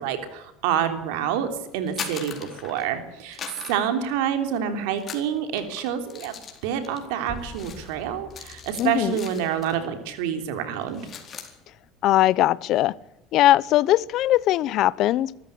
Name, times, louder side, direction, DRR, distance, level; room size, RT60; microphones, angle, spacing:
voice 1, 0.0-3.4 3.7-6.3 6.6-11.0, right 9 dB, 85° right, 8 dB, 3.3 m, -27 dB
sound 1, 1.7-3.0 3.3-4.6 5.0-9.9 10.2-10.4 10.7-11.5, left 7 dB, 35° left, 4.2 m, -40 dB
sound 2, 7.3-10.3, left 1 dB, 10° left, 5.9 m, -44 dB
voice 2, 8.8-9.2 12.0-12.9 13.3-15.4, left 14 dB, 55° left, 21 dB, 0.8 m, -20 dB
24.0 x 14.0 x 8.5 m, 0.87 s
cardioid pair, 130°, 0 cm